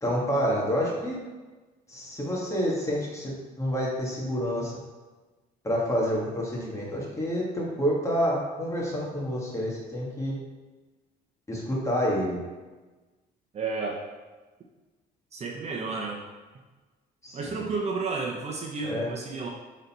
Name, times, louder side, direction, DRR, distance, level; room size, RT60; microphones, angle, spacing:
voice 1, 0.0-1.2 1.9-4.7 5.6-10.3 11.5-12.4 17.2-17.6 18.8-19.1, equal, 15° left, -4 dB, 1.9 m, -28 dB
voice 2, 13.5-14.0 15.3-16.2 17.3-19.5, right 4 dB, 40° right, 0 dB, 0.9 m, -32 dB
6.4 x 4.0 x 4.3 m, 1.2 s
cardioid pair, 110°, 17 cm